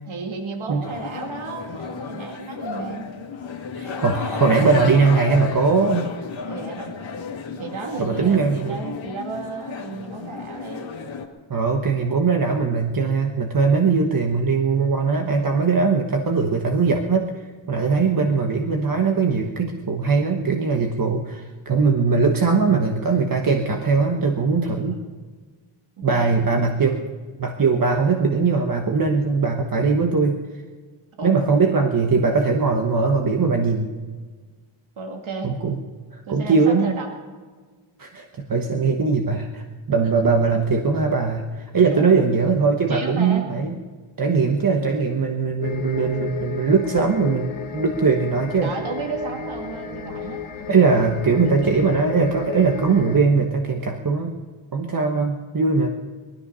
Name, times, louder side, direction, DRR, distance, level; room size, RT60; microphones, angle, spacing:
voice 1, 0.1-3.1 6.5-6.9 7.6-10.9 24.7-25.1 26.0-26.4 31.2-31.3 35.0-35.6 36.3-37.1 41.9-42.2 42.9-43.5 45.9-46.0 48.6-50.4 51.6-51.8, right 4 dB, 75° right, 2 dB, 2.2 m, -33 dB
sound 1, 0.8-11.3, left 5 dB, 65° left, 1.8 m, -33 dB
voice 2, 3.7-6.1 8.0-8.8 11.5-25.0 26.0-27.0 27.4-30.4 31.2-33.9 35.4-35.8 36.1-36.9 38.0-43.8 44.2-48.7 50.7-54.4 54.7-55.9, right 4 dB, 45° right, 3 dB, 1.2 m, -20 dB
sound 2, 45.6-53.2, left 7 dB, 85° left, 1.3 m, -33 dB
19.5 x 13.0 x 5.6 m, 1.5 s
wide cardioid pair, 130°, 48 cm